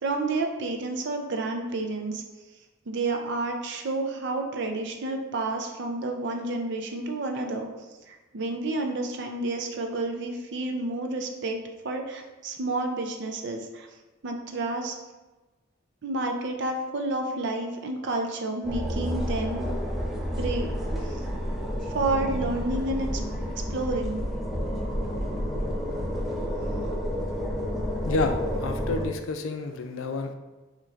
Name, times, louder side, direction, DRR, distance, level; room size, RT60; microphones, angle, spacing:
voice 1, 0.0-2.2 2.9-7.7 8.1-11.6 11.8-13.9 14.2-15.0 16.0-19.7 20.3-20.7 21.0-21.2 21.9-23.2 23.7-24.2, right 2 dB, 60° right, 3 dB, 0.5 m, -30 dB
sound 1, 18.6-29.1, equal, ahead, 0.5 m, -30 dB
voice 2, 28.0-30.3, left 3 dB, 85° left, 7 dB, 0.4 m, -29 dB
5.7 x 3.0 x 2.5 m, 1.2 s
head